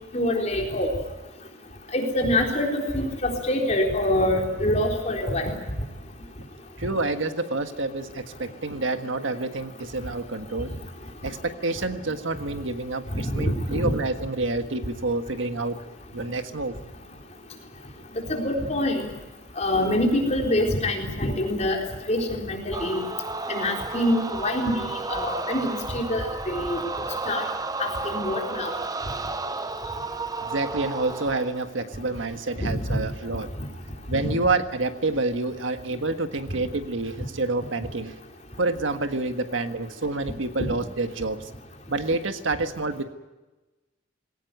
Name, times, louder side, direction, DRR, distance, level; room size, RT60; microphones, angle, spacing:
voice 1, 0.1-0.9 1.9-5.5 13.1-13.9 18.3-19.0 19.6-21.8 22.1-23.0 23.5-26.8 27.3-27.4 27.8-28.7 32.6-33.0 34.2-34.3, left 1 dB, 35° left, 1 dB, 4.0 m, -25 dB
voice 2, 6.8-10.7 11.2-15.8 16.1-16.8 30.4-33.5 34.1-38.2 38.6-41.5 41.9-43.0, right 3 dB, 85° right, 8 dB, 1.6 m, -28 dB
sound 1, 22.7-31.6, right 3 dB, 20° right, 0.8 m, -32 dB
21.5 x 18.0 x 9.3 m, 1.1 s
head